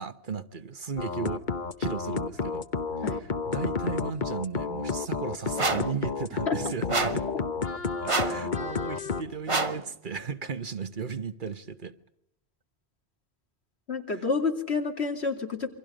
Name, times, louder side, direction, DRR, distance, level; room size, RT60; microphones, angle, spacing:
voice 1, 0.0-1.5 1.8-2.7 3.2-7.2 8.0-11.9 14.1-14.2, right 6 dB, 50° right, 1.2 m, -36 dB
sound 1, 1.0-9.2, left 4 dB, 50° left, 1.1 m, -31 dB
sound 2, 5.6-5.9 6.9-7.3 8.1-8.4 9.5-9.8, right 3 dB, 30° right, 1.1 m, -27 dB
voice 2, 13.9-15.7, left 4 dB, 80° left, 3.1 m, -29 dB
28.5 x 24.5 x 5.1 m
omnidirectional pair, 1.1 m